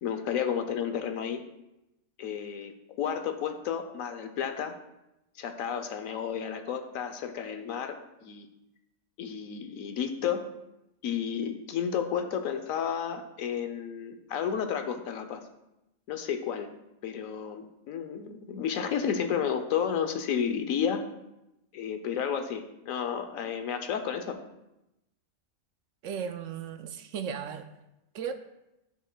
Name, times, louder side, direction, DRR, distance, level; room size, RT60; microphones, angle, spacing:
voice 1, 0.0-1.4 2.2-4.7 5.4-7.9 8.2-8.5 9.2-10.4 11.0-15.4 16.1-16.7 17.0-21.0 21.7-24.4, left 8 dB, 75° left, 6 dB, 1.1 m, -32 dB
voice 2, 26.0-27.7 28.1-28.3, right 7 dB, 70° right, 8 dB, 0.9 m, -35 dB
11.0 x 6.2 x 2.2 m, 0.91 s
omnidirectional pair, 1.4 m